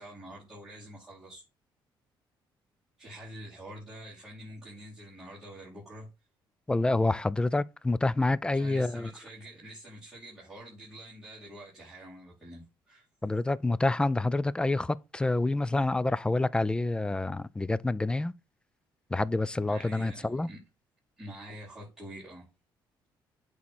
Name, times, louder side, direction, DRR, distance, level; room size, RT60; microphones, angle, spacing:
voice 1, 0.0-1.5 3.0-6.1 8.5-13.1 19.7-20.6 21.2-22.5, right 1 dB, 5° right, 4.5 m, -46 dB
voice 2, 6.7-9.1 13.2-18.3 19.1-20.5, left 2 dB, 10° left, 0.3 m, -27 dB
8.6 x 4.2 x 4.2 m
cardioid pair, 125°, 9 cm